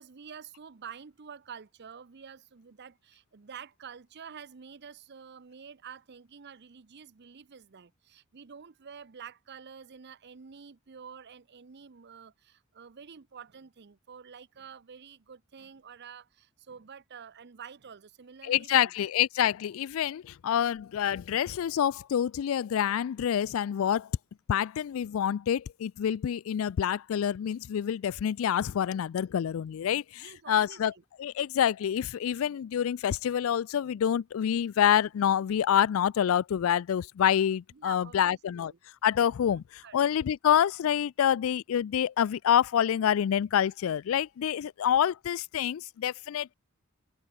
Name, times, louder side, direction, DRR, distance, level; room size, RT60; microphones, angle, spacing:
voice 1, 0.0-18.9 30.1-31.0 37.7-38.8 39.5-40.1, right 7 dB, 50° right, 0.7 m, -48 dB
voice 2, 18.4-24.1 24.5-30.9 31.2-38.7 39.0-46.5, left 9 dB, 70° left, 0.3 m, -27 dB
open air
head